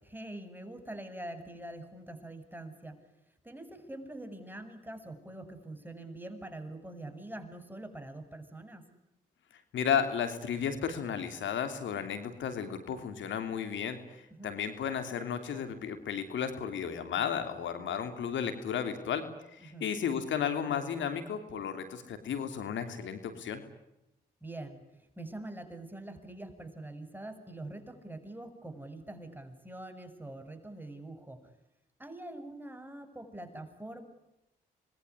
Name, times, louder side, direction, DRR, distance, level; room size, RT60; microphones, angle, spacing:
voice 1, 0.0-3.0 3.4-8.8 14.3-14.5 19.6-19.9 24.4-24.8 25.2-31.5 32.0-34.1, right 1 dB, 10° right, 8 dB, 7.6 m, -44 dB
voice 2, 9.7-19.3 19.5-23.6, left 7 dB, 75° left, 8 dB, 3.1 m, -33 dB
26.5 x 22.0 x 9.8 m, 0.88 s
supercardioid pair, 45°, 20 cm